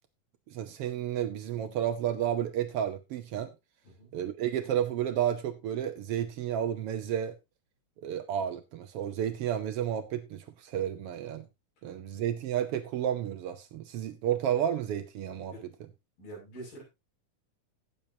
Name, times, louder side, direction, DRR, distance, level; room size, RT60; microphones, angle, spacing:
voice 1, 0.5-3.5 4.1-7.3 8.0-11.5 11.8-15.9, right 10 dB, 80° right, 1.3 m, -31 dB
voice 2, 16.2-16.8, right 1 dB, 90° left, 8.3 m, -45 dB
17.5 x 7.1 x 2.8 m
omnidirectional pair, 3.8 m